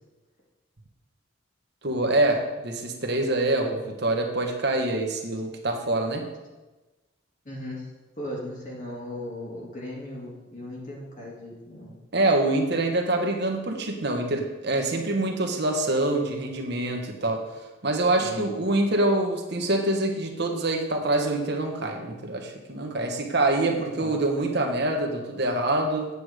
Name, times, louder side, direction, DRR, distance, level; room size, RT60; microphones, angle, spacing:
voice 1, 1.8-6.3 12.1-17.4 17.8-26.1, right 2 dB, 50° right, 3 dB, 1.3 m, -25 dB
voice 2, 7.5-7.9 8.2-11.9 18.2-18.6 24.0-24.2, left 1 dB, 35° left, -3 dB, 1.9 m, -37 dB
8.3 x 8.2 x 5.0 m, 1.1 s
head